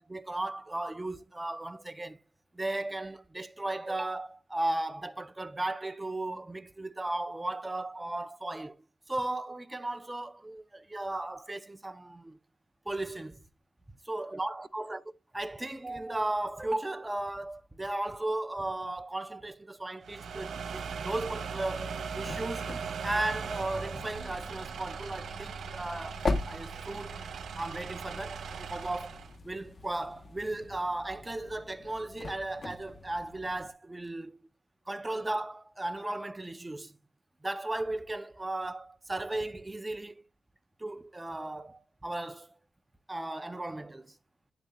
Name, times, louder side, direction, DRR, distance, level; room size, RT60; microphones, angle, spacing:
voice 1, 0.0-2.2 2.5-12.4 12.9-13.4 14.0-15.0 15.3-22.8 23.0-27.2 27.6-34.4 34.9-37.0 37.4-40.3 40.8-42.5 43.1-44.2, right 2 dB, 15° right, 0.6 m, -36 dB
sound 1, 20.0-29.3, right 6 dB, 75° right, 1.5 m, -39 dB
sound 2, 21.7-33.7, left 3 dB, 40° left, 1.0 m, -41 dB
10.5 x 6.8 x 2.3 m
cardioid pair, 110°, 0 cm